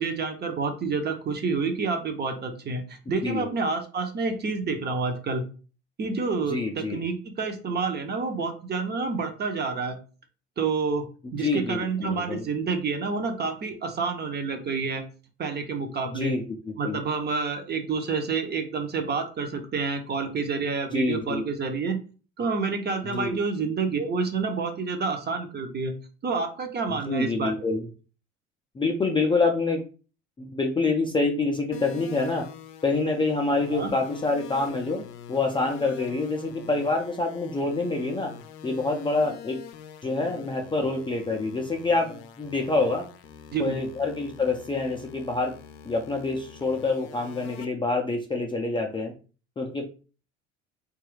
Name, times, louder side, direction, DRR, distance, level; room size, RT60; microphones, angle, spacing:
voice 1, 0.0-5.4 6.0-10.0 10.6-11.0 11.3-15.0 15.4-16.3 16.8-22.0 22.4-25.9 26.2-27.5 33.7-33.9 43.5-43.8, right 4 dB, 30° right, 5 dB, 0.7 m, -28 dB
voice 2, 6.5-7.0 11.2-12.4 16.1-17.0 20.9-21.4 23.0-23.4 27.1-27.9 28.8-29.8 30.4-32.5 32.8-35.0 35.3-38.3 38.6-39.6 40.0-43.1 43.6-45.6 45.8-49.1 49.6-49.9, left 3 dB, 15° left, 2 dB, 0.4 m, -26 dB
sound 1, 31.7-47.6, left 8 dB, 65° left, 0.6 m, -45 dB
3.0 x 2.4 x 3.1 m, 0.36 s
hypercardioid pair, 65°, 34 cm